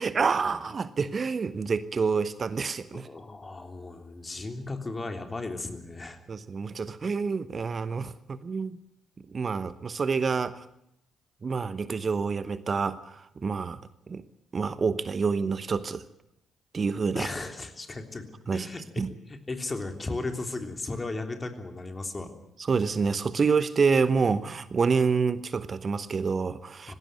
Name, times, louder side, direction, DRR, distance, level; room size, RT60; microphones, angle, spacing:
voice 1, 0.0-3.1 6.3-8.8 9.3-10.6 11.4-13.8 14.1-14.2 14.5-16.0 16.7-17.3 18.5-18.7 19.0-19.1 22.7-26.9, right 5 dB, 40° right, 15 dB, 1.0 m, -27 dB
voice 2, 2.9-6.2 17.1-18.3 18.5-19.0 19.3-22.3 26.9-27.0, left 2 dB, 30° left, 6 dB, 3.4 m, -35 dB
19.5 x 16.5 x 9.4 m, 0.79 s
hypercardioid pair, 45°, 0 cm